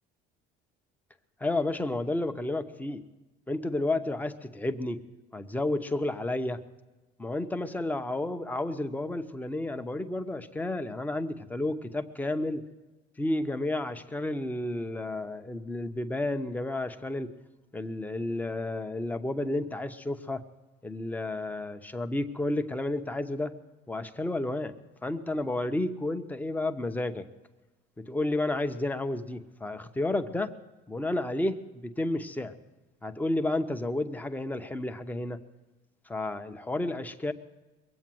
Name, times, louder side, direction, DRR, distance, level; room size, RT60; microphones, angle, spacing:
voice 1, 1.4-3.0 3.5-5.0 5.3-6.6 7.2-12.6 13.2-17.3 17.7-20.4 20.8-23.5 23.9-24.7 25.0-27.2 28.0-30.5 30.9-32.5 33.0-35.4 36.1-37.3, left 2 dB, 10° left, 8 dB, 0.8 m, -31 dB
22.0 x 8.4 x 7.6 m, 1.2 s
cardioid pair, 140°, 19 cm